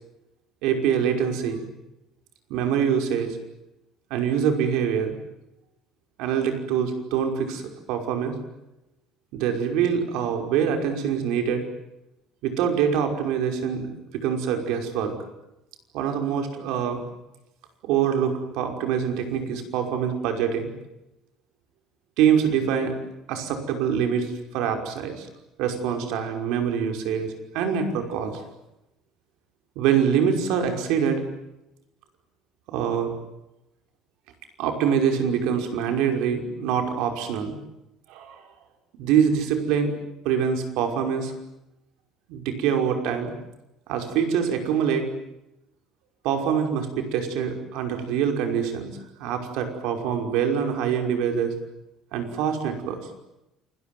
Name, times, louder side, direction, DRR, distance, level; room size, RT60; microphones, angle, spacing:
voice 1, 0.6-1.6 2.5-3.4 4.1-5.2 6.2-8.4 9.3-11.6 12.4-15.2 15.9-17.0 17.8-20.7 22.2-23.0 23.3-25.3 25.6-28.4 29.8-31.2 32.7-33.1 34.6-37.6 38.1-38.4 38.9-39.9 40.2-41.3 42.3-43.3 43.9-45.1 46.2-48.9 49.2-51.5 52.1-53.0, right 7 dB, 75° right, 5 dB, 5.6 m, -25 dB
29.0 x 21.5 x 9.5 m, 0.91 s
cardioid pair, 180°, 0 cm